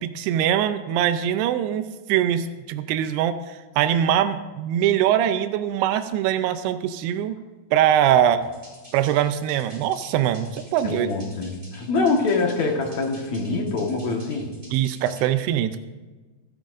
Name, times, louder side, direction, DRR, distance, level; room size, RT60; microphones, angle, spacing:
voice 1, 0.0-7.4 7.7-8.4 8.9-11.1 14.7-15.8, right 10 dB, 90° right, 10 dB, 2.7 m, -22 dB
sound 1, 8.4-15.3, equal, 15° right, 3.6 m, -49 dB
voice 2, 10.8-14.5, left 3 dB, 55° left, 1 dB, 2.3 m, -24 dB
27.0 x 9.0 x 2.6 m, 1.3 s
omnidirectional pair, 4.5 m